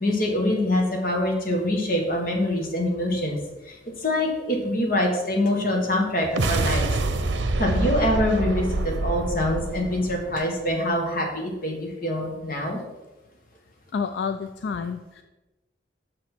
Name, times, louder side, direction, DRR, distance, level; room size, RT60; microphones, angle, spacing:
voice 1, 0.0-3.4 3.6-7.0 7.6-12.8, left 1 dB, 50° left, 1 dB, 1.5 m, -25 dB
sound 1, 6.2-10.8, right 2 dB, 85° right, 0.6 m, -26 dB
voice 2, 13.9-15.2, left 5 dB, 70° left, 8 dB, 0.3 m, -29 dB
6.3 x 6.0 x 4.4 m, 1.1 s
head